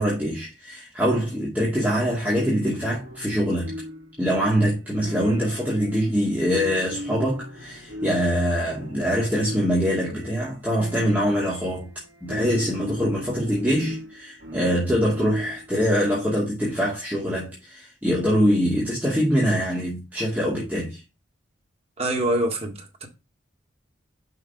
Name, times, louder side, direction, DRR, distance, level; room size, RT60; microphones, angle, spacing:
voice 1, 0.0-3.7 4.2-11.9 12.2-21.0, equal, 10° right, 2.3 m, -24 dB
sound 1, 2.2-15.8, equal, 60° right, 2.4 m, -38 dB
voice 2, 22.0-23.1, right 1 dB, 30° right, 2.0 m, -25 dB
5.9 x 5.6 x 5.5 m
head